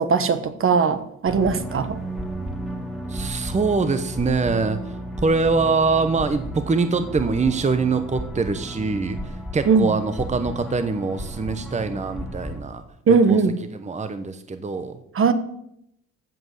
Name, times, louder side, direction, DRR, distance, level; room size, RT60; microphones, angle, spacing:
voice 1, 0.0-2.0 9.7-9.9 13.1-13.5 15.1-15.3, right 5 dB, 45° right, 10 dB, 1.2 m, -19 dB
sound 1, 1.3-12.6, right 1 dB, ahead, 1.8 m, -33 dB
voice 2, 3.1-12.8 13.1-13.4 13.7-15.0, right 4 dB, 25° right, 9 dB, 1.0 m, -24 dB
15.0 x 5.3 x 7.8 m, 0.77 s
cardioid pair, 90°, 30 cm